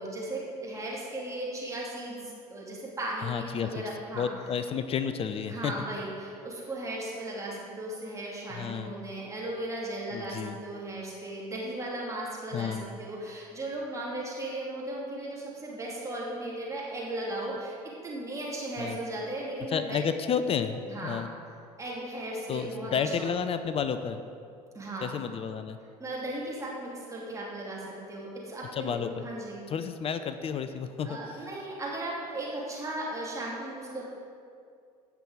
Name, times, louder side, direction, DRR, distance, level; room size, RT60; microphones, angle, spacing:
voice 1, 0.0-4.3 5.5-17.8 18.0-20.0 20.9-21.2 21.8-23.3 24.7-25.1 26.0-29.6 31.0-34.0, right 1 dB, 15° right, -5 dB, 2.7 m, -36 dB
voice 2, 3.2-3.7 4.1-5.7 8.5-8.9 10.1-10.6 12.5-12.8 18.8-19.0 19.7-21.3 22.5-24.2 25.0-25.8 28.7-29.3 29.7-31.2, left 7 dB, 30° left, 10 dB, 0.6 m, -31 dB
16.0 x 6.1 x 5.0 m, 2.3 s
figure-of-eight pair, 70°, 20 cm